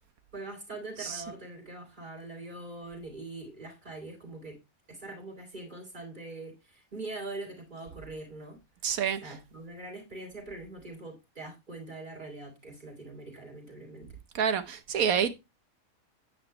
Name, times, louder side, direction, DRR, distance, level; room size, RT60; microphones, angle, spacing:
voice 1, 0.3-4.6 4.9-8.6 9.2-14.1, right 2 dB, 35° right, 3.6 m, -43 dB
voice 2, 8.8-9.4 14.3-15.3, right 7 dB, 90° right, 1.5 m, -28 dB
9.5 x 9.1 x 3.3 m
omnidirectional pair, 1.5 m